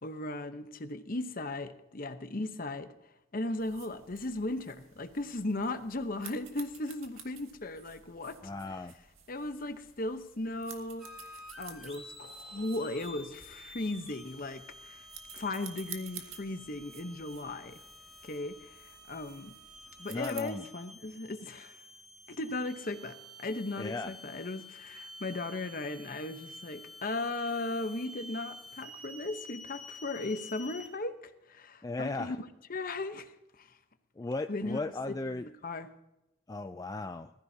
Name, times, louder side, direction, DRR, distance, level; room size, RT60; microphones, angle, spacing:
voice 1, 0.0-2.9 3.3-8.4 9.3-11.1 11.6-15.1 15.3-17.8 18.2-19.5 20.0-21.8 22.3-31.2 31.5-32.4 32.7-33.7 34.5-34.8 35.1-35.9, left 2 dB, 40° left, 0.9 m, -37 dB
sound 1, 3.6-20.5, right 8 dB, 75° right, 1.9 m, -52 dB
voice 2, 8.4-8.9 20.1-20.6 23.8-24.1 31.8-32.4 34.2-35.5 36.5-37.3, left 2 dB, 15° left, 0.3 m, -36 dB
sound 2, 11.0-30.9, left 1 dB, ahead, 3.1 m, -50 dB
20.5 x 14.5 x 2.8 m
head